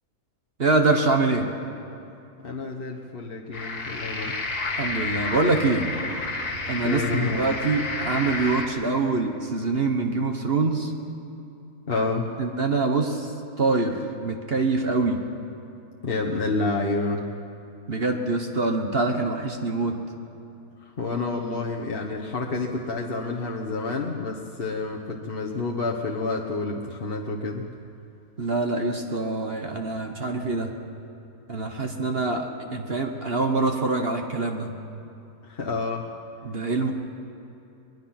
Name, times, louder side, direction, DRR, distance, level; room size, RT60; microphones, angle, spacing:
voice 1, 0.6-1.5 4.7-5.9 6.7-10.9 12.4-13.3 13.6-15.2 17.9-20.0 28.4-30.7 31.5-34.7 36.4-36.9, right 3 dB, 40° right, 4 dB, 1.4 m, -25 dB
voice 2, 2.4-4.4 6.8-7.4 11.9-12.3 16.0-17.2 20.8-27.6 35.4-36.1, left 3 dB, 40° left, -2 dB, 1.3 m, -29 dB
sound 1, 3.5-8.7, left 3 dB, 75° left, 2.6 m, -30 dB
23.0 x 21.0 x 5.9 m, 2.8 s
omnidirectional pair, 1.7 m